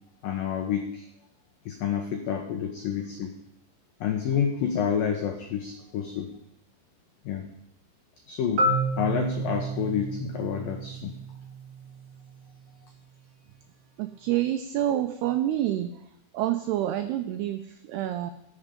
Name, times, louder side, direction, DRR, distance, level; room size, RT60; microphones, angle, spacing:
voice 1, 0.2-1.1 1.7-3.3 4.0-6.3 7.3-7.5 8.3-8.7 9.0-11.1, left 8 dB, 85° left, 4 dB, 1.9 m, -29 dB
Marimba xylophone, 8.6-12.5, right 2 dB, 50° right, 1.9 m, -30 dB
voice 2, 14.0-15.9 16.3-18.3, right 12 dB, 90° right, 8 dB, 2.3 m, -27 dB
18.5 x 7.2 x 5.2 m, 0.78 s
omnidirectional pair, 5.4 m